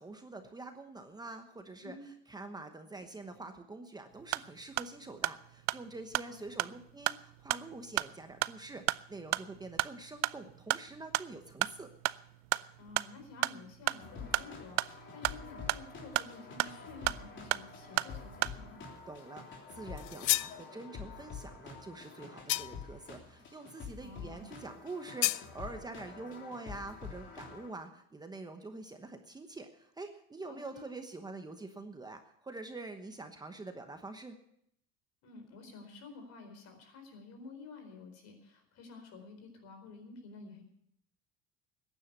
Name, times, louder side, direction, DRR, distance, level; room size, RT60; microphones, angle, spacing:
voice 1, 0.0-11.9 19.1-34.4, right 3 dB, 15° right, 6 dB, 1.1 m, -46 dB
sound 1, 4.1-18.6, right 19 dB, 60° right, 0.5 m, -36 dB
voice 2, 6.2-6.7 12.8-18.8 24.0-24.5 30.5-30.9 35.2-40.6, left 3 dB, 60° left, 6 dB, 4.4 m, -51 dB
sound 2, 14.0-27.7, left 5 dB, 40° left, 3.3 m, -47 dB
sound 3, 20.0-20.6 22.5-22.9 25.2-25.5, left 20 dB, 90° left, 0.5 m, -31 dB
15.0 x 10.0 x 6.7 m, 0.71 s
cardioid pair, 135°, 30 cm